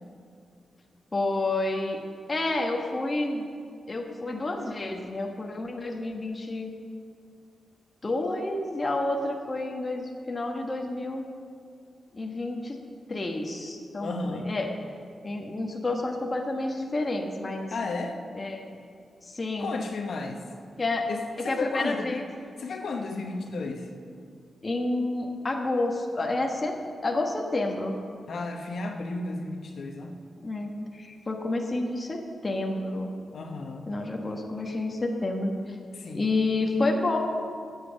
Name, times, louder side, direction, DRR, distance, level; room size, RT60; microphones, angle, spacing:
voice 1, 1.1-2.0 2.3-3.5 3.9-6.7 8.0-11.2 12.1-12.8 13.1-14.7 15.2-17.8 18.3-18.8 19.2-19.7 20.8-21.1 21.4-22.3 22.7-22.8 24.6-28.0 30.4-33.1 33.9-35.8 36.1-37.2, left 2 dB, 30° left, 1 dB, 1.2 m, -29 dB
voice 2, 14.0-14.5 17.7-18.2 19.6-20.4 21.1-22.2 22.6-23.9 28.3-30.2 33.3-33.9 36.0-36.3, left 3 dB, 70° left, 4 dB, 1.0 m, -33 dB
13.5 x 8.4 x 6.4 m, 2.3 s
wide cardioid pair, 110°, 0 cm